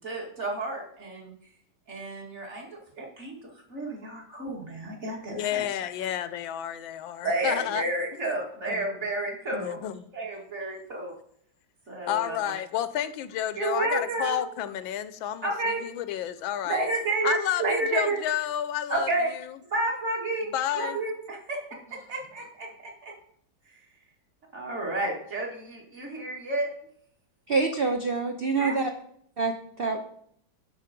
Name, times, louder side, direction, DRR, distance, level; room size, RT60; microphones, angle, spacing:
voice 1, 0.0-1.3 1.9-3.4 3.7-5.6 7.2-9.8 10.1-11.1 11.9-12.4 13.6-14.4 15.4-15.8 16.6-18.2 18.9-19.3 19.7-20.5 20.7-21.6 21.9-23.1 23.7-23.8 24.5-26.7 28.5-28.8, right 2 dB, 35° right, -1 dB, 2.3 m, -30 dB
voice 2, 5.3-7.8 8.2-8.4 8.7-8.8 9.5-10.0 12.1-16.9 17.2-19.1 20.5-21.0, left 11 dB, 90° left, 14 dB, 1.4 m, -31 dB
voice 3, 27.5-28.9 29.4-30.0, right 4 dB, 55° right, 3 dB, 0.6 m, -26 dB
11.5 x 5.0 x 5.1 m, 0.67 s
omnidirectional pair, 2.1 m